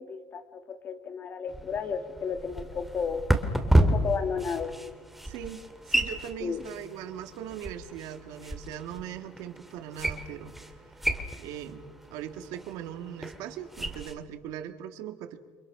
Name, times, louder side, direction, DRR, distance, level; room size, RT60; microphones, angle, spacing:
voice 1, 0.0-3.2 3.8-4.7 6.4-6.6, left 6 dB, 30° left, 7 dB, 2.3 m, -33 dB
sound 1, 1.5-14.1, right 1 dB, ahead, 2.2 m, -31 dB
voice 2, 5.2-10.5 11.4-11.8 12.1-15.4, right 9 dB, 65° right, 7 dB, 2.5 m, -40 dB
29.5 x 27.0 x 6.4 m, 1.4 s
cardioid pair, 170°, 7 cm